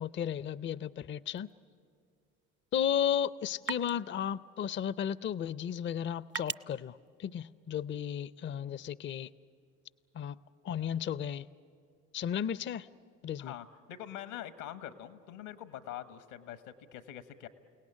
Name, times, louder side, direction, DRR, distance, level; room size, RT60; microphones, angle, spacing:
voice 1, 0.0-1.5 2.7-9.3 10.1-10.4 10.6-11.5 12.1-12.9 13.2-13.5, left 9 dB, 30° left, 19 dB, 0.5 m, -34 dB
sound 1, 1.3-8.1, right 8 dB, 30° right, 0.5 m, -47 dB
voice 2, 13.4-17.5, left 11 dB, 75° left, 13 dB, 1.4 m, -44 dB
29.0 x 18.0 x 9.9 m, 2.4 s
hypercardioid pair, 55°, 39 cm